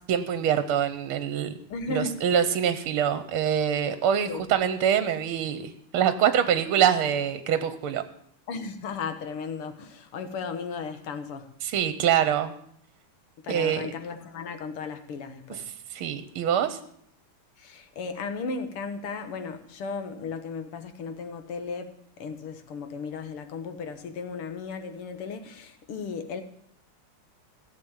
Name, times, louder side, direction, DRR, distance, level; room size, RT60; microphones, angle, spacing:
voice 1, 0.1-1.6 1.9-8.0 11.6-12.5 13.5-13.8 15.9-16.8, right 9 dB, 75° right, 11 dB, 1.7 m, -25 dB
voice 2, 1.7-2.2 4.3-4.4 8.5-11.5 13.4-15.6 17.6-26.4, left 4 dB, 80° left, 8 dB, 2.2 m, -35 dB
16.5 x 7.3 x 8.9 m, 0.67 s
omnidirectional pair, 2.4 m